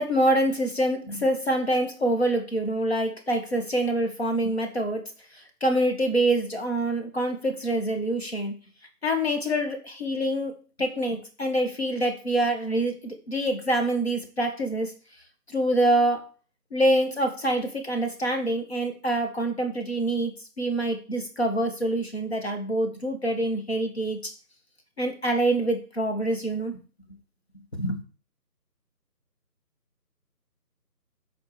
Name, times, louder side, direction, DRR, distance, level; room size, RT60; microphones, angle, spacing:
voice 1, 0.0-5.1 5.6-8.5 9.0-10.5 10.8-14.9 15.5-16.3 16.7-20.3 20.6-24.2 25.0-26.8 27.7-28.0, right 1 dB, 40° left, 4 dB, 2.3 m, -25 dB
13.0 x 4.8 x 5.1 m, 0.37 s
figure-of-eight pair, 175°, 48 cm